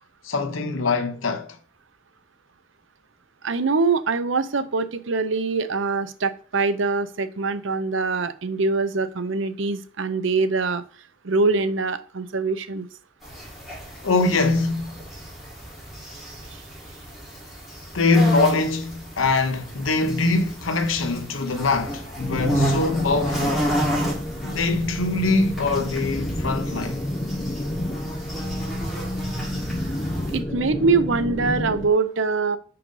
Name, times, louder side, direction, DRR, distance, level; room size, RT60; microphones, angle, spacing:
voice 1, 0.2-1.5 14.0-14.9 17.9-23.6 24.4-27.0, left 3 dB, 90° left, 0.9 m, -23 dB
voice 2, 3.4-10.8 11.2-12.9 30.3-32.6, right 4 dB, 75° right, 0.7 m, -23 dB
sound 1, 13.2-30.4, equal, ahead, 3.6 m, -32 dB
sound 2, 22.2-31.9, left 1 dB, 25° left, 0.8 m, -30 dB
5.7 x 5.3 x 5.4 m
head